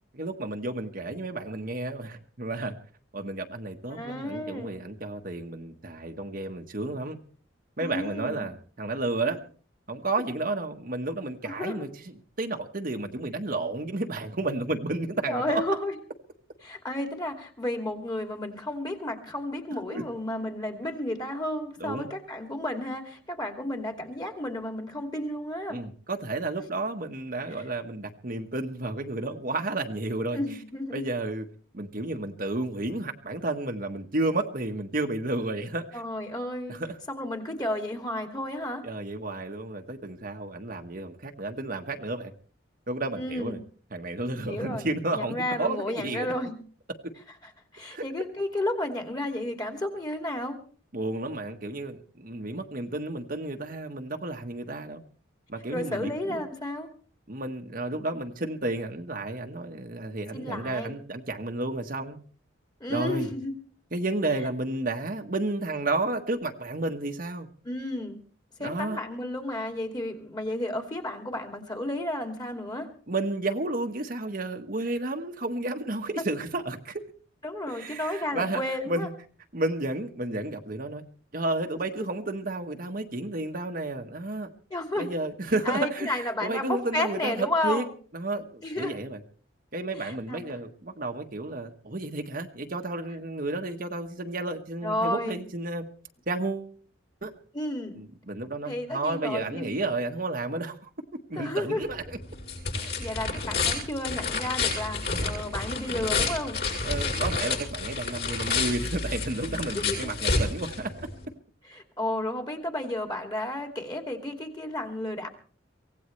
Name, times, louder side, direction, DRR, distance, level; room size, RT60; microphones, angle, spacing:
voice 1, 0.1-2.7 3.1-7.2 7.8-9.4 9.9-11.9 12.4-15.7 19.9-20.1 21.8-22.1 25.7-30.4 30.9-31.4 31.7-36.0 36.7-37.0 38.8-42.3 42.9-43.6 43.9-46.3 47.9-48.0 50.9-55.0 55.5-56.5 57.3-62.2 62.9-63.3 63.9-67.5 68.6-69.0 73.1-77.0 77.7-79.1 79.5-81.1 81.3-84.5 85.0-87.8 88.1-89.2 89.7-95.9 96.3-96.7 97.2-97.3 97.9-100.9 101.3-102.2 106.8-111.1, right 2 dB, 45° right, 1.3 m, -32 dB
voice 2, 3.9-4.7 7.8-8.4 11.4-11.8 15.3-16.0 16.6-25.8 27.6-27.7 30.3-31.1 35.9-36.8 37.1-38.8 43.2-43.6 44.3-46.6 47.7-50.6 55.7-56.9 60.3-60.9 62.8-63.5 67.6-68.2 68.6-72.9 77.4-79.1 84.7-85.1 85.6-87.9 88.6-89.0 90.0-90.5 94.8-95.4 97.5-98.0 98.7-99.8 101.3-101.9 102.7-106.6 109.5-110.1 111.6-115.3, left 1 dB, 20° left, 2.5 m, -32 dB
sound 1, 101.8-111.3, left 4 dB, 55° left, 7.8 m, -30 dB
24.0 x 17.5 x 3.3 m
head